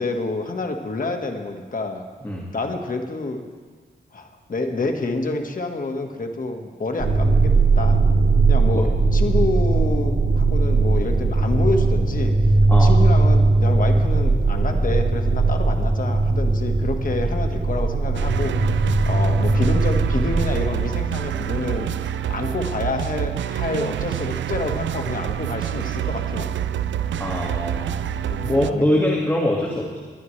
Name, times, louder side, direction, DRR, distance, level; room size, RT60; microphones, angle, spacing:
voice 1, 0.0-2.0 2.5-3.4 4.1-8.0 8.5-12.3 12.7-18.6 19.0-21.9 22.3-26.7 28.2-29.2, left 3 dB, 50° left, 4 dB, 1.6 m, -28 dB
sound 1, 7.0-20.7, right 3 dB, 50° right, 3.0 m, -19 dB
sound 2, 18.1-28.7, right 10 dB, 90° right, 0.4 m, -27 dB
voice 2, 27.2-28.0 28.4-30.0, left 1 dB, 10° left, -3 dB, 2.0 m, -23 dB
20.0 x 11.5 x 3.3 m, 1.5 s
cardioid pair, 80°, 19 cm